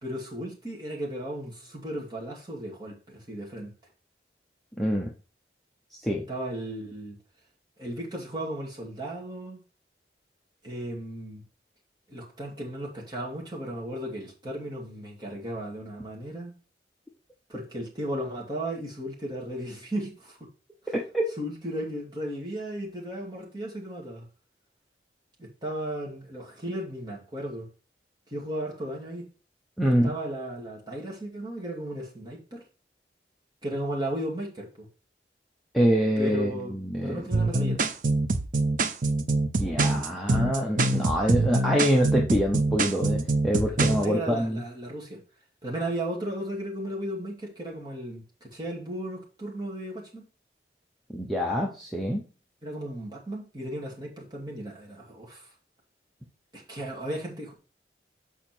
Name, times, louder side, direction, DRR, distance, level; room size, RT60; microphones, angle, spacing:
voice 1, 0.0-3.7 6.3-7.2 7.8-9.6 10.6-11.4 12.1-16.5 17.5-20.5 20.8-20.9 21.4-24.3 25.4-27.7 28.3-29.3 29.8-32.6 33.6-34.9 36.2-36.7 37.0-37.9 43.8-45.2 45.6-50.2 52.6-55.5 56.5-57.5, right 1 dB, 25° right, 2.4 m, -35 dB
voice 2, 4.8-5.1 6.0-6.3 20.9-21.2 29.8-30.1 35.7-37.2 39.6-44.6 51.1-52.2, equal, ahead, 0.9 m, -25 dB
sound 1, 37.3-44.0, right 2 dB, 45° right, 0.6 m, -25 dB
7.2 x 5.0 x 4.5 m
head